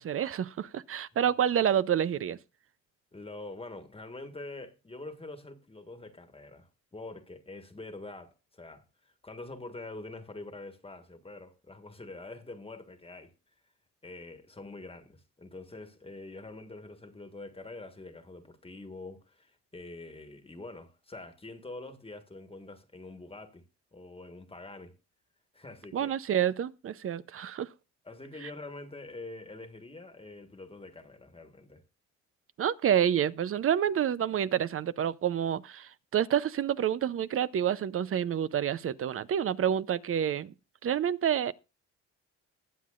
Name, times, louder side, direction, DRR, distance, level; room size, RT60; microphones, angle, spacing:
voice 1, 0.0-2.4 25.9-27.7 28.4-28.5 32.6-40.5 40.8-41.5, right 9 dB, 45° right, 0.6 m, -28 dB
voice 2, 3.1-13.3 14.0-23.6 23.9-24.9 25.5-26.1 28.0-31.8, left 2 dB, 20° left, 1.5 m, -45 dB
20.5 x 7.5 x 2.5 m
cardioid pair, 90°, 30 cm